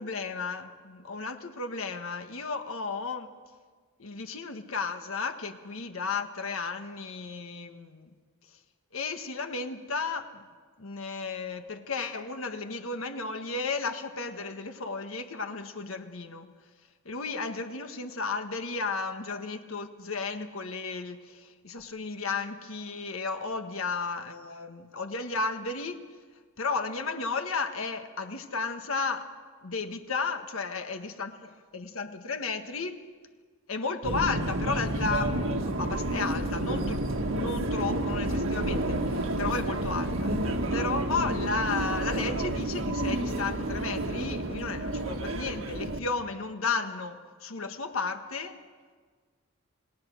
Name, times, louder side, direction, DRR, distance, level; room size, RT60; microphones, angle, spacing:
voice 1, 0.0-3.3 4.0-8.1 8.9-10.4 10.8-16.5 17.0-26.0 26.6-29.3 29.6-33.1 33.7-37.1 37.3-40.3 40.7-48.6, left 4 dB, 75° left, 6 dB, 1.5 m, -33 dB
Subway metro underground, 34.0-46.0, right 1 dB, 70° right, 1.8 m, -30 dB
28.0 x 19.0 x 6.4 m, 1.5 s
head